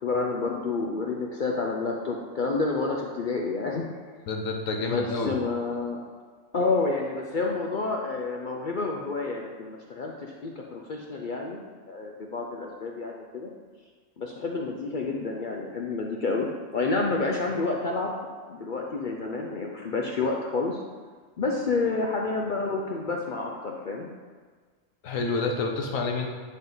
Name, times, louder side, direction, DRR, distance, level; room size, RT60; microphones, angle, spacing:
voice 1, 0.0-3.8 4.8-6.0 6.5-11.6 11.9-13.5 14.2-18.1 18.5-20.8 21.4-24.1, left 3 dB, 55° left, 0 dB, 0.5 m, -29 dB
voice 2, 4.3-5.4 25.0-26.3, left 3 dB, 75° left, 2 dB, 1.1 m, -28 dB
9.6 x 3.6 x 3.9 m, 1.5 s
omnidirectional pair, 1.4 m